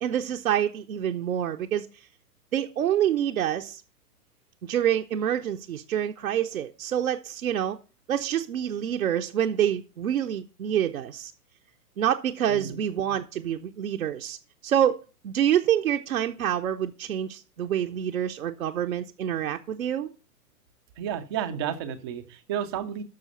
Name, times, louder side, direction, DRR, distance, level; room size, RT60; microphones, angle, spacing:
voice 1, 0.0-2.1 2.5-3.8 4.6-7.8 8.1-11.3 12.0-14.4 14.6-15.0 15.2-20.1, right 10 dB, 60° right, 0.7 m, -27 dB
voice 2, 21.0-23.0, right 9 dB, 20° right, 0.4 m, -32 dB
12.5 x 6.2 x 4.1 m
figure-of-eight pair, 105°, 47 cm